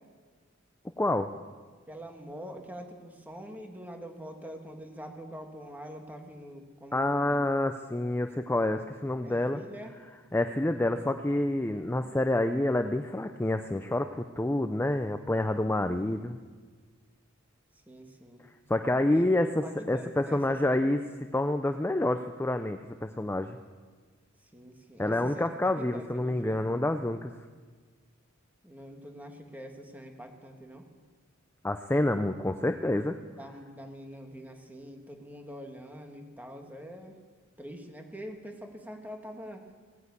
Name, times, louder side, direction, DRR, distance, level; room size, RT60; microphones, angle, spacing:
voice 1, 1.0-1.3 6.9-9.6 10.3-16.4 18.7-21.0 21.3-23.6 25.0-27.3 31.6-33.2, left 1 dB, 10° left, 7 dB, 0.5 m, -28 dB
voice 2, 1.9-7.5 9.2-10.0 15.9-16.3 17.9-18.4 19.0-20.9 24.4-26.6 28.6-30.9 33.0-37.2 37.6-39.7, equal, 10° right, 3 dB, 1.7 m, -45 dB
17.5 x 9.6 x 8.3 m, 1.5 s
head